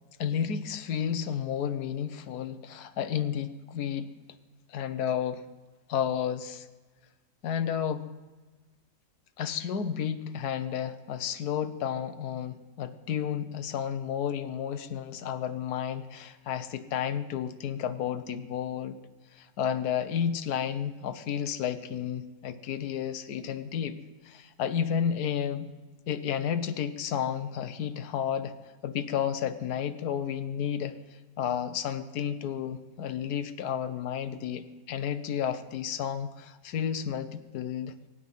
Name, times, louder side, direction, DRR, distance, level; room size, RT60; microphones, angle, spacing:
voice 1, 0.2-4.1 4.7-5.4 5.9-6.7 7.4-8.1 9.4-19.0 19.3-24.0 24.2-25.7 26.1-28.5 28.8-31.0 31.4-38.0, left 8 dB, 65° left, 10 dB, 1.4 m, -32 dB
23.5 x 9.4 x 5.5 m, 1.3 s
omnidirectional pair, 1.9 m